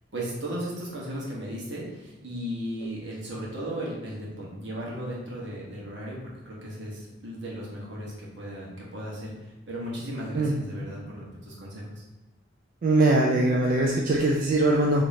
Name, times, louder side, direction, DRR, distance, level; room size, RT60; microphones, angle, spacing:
voice 1, 0.1-6.2 6.4-12.0, equal, 75° right, -4 dB, 1.2 m, -36 dB
voice 2, 12.8-15.0, right 2 dB, 50° right, -1 dB, 0.4 m, -21 dB
5.0 x 2.9 x 2.7 m, 1.1 s
head